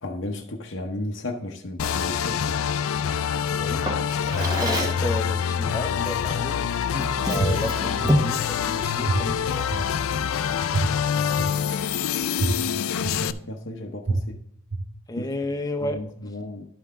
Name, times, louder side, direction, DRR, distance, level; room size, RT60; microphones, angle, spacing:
voice 1, 0.0-2.4 11.1-11.3 12.7-14.4 15.2-15.3 15.8-16.7, left 1 dB, 60° left, 2 dB, 0.8 m, -34 dB
sound 1, 1.8-13.3, left 8 dB, 85° left, 0.4 m, -26 dB
Drawer open or close, 3.8-5.1 6.3-6.5 6.9-8.4, equal, 20° right, 1.2 m, -27 dB
voice 2, 4.3-6.7 7.2-9.7 15.1-16.3, left 1 dB, 20° left, 4 dB, 0.7 m, -32 dB
sound 2, 7.4-7.5 8.0-8.1 9.1-9.2 9.7-9.8 10.7-10.8 11.4-11.5 12.4-12.5 13.0-13.1 14.1-14.2 14.7-14.8, right 4 dB, 60° right, 1.3 m, -24 dB
11.5 x 5.7 x 3.7 m, 0.74 s
head